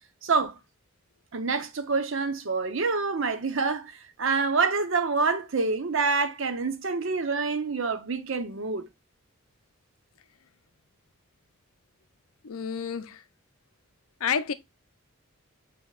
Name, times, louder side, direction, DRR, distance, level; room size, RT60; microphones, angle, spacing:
voice 1, 0.2-0.6 1.3-8.9, right 4 dB, 60° right, 0.7 m, -27 dB
voice 2, 12.4-13.2 14.2-14.5, left 7 dB, 75° left, 0.5 m, -29 dB
7.1 x 2.9 x 2.3 m
head